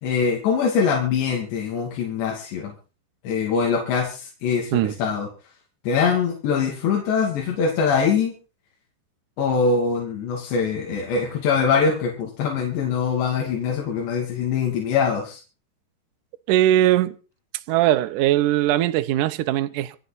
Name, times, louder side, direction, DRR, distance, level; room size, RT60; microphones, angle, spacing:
voice 1, 0.0-2.7 3.2-5.3 5.8-8.3 9.4-15.4, left 6 dB, 80° left, 4.8 m, -23 dB
voice 2, 16.5-17.2 17.7-20.0, right 13 dB, 90° right, 1.8 m, -20 dB
26.0 x 9.2 x 4.1 m
omnidirectional pair, 5.0 m